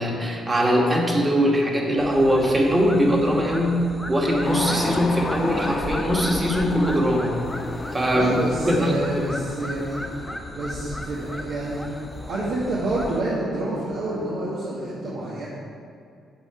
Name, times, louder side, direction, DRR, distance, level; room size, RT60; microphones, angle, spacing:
voice 1, 0.0-7.4 7.9-8.3 8.7-9.3, equal, 25° right, -1 dB, 1.9 m, -21 dB
sound 1, 2.0-13.2, left 1 dB, 5° left, 0.8 m, -37 dB
sound 2, 4.4-13.1, left 3 dB, 35° left, 0.9 m, -33 dB
voice 2, 8.1-10.0 10.5-11.8 12.2-15.5, right 2 dB, 75° right, -7 dB, 1.8 m, -28 dB
8.8 x 7.2 x 4.5 m, 2.3 s
cardioid pair, 90°, 0 cm